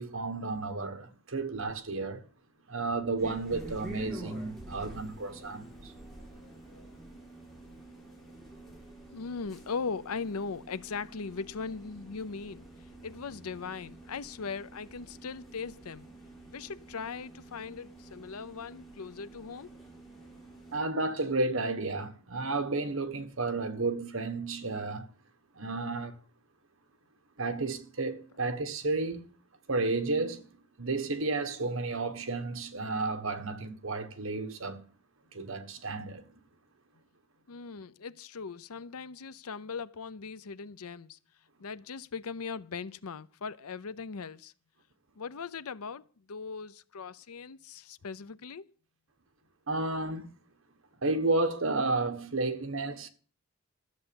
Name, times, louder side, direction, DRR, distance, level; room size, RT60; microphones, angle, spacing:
voice 1, 0.0-2.2 2.7-5.9 20.7-25.1 25.6-26.2 27.4-29.2 29.7-30.5 30.8-34.8 35.3-36.2 49.7-50.3 51.0-53.1, right 3 dB, 65° right, 1.5 m, -32 dB
sound 1, 3.2-20.8, right 1 dB, ahead, 4.1 m, -48 dB
voice 2, 9.1-16.1 16.5-19.7 37.5-41.2 41.6-44.5 45.2-48.7, left 5 dB, 85° left, 0.6 m, -39 dB
13.5 x 7.8 x 7.1 m
head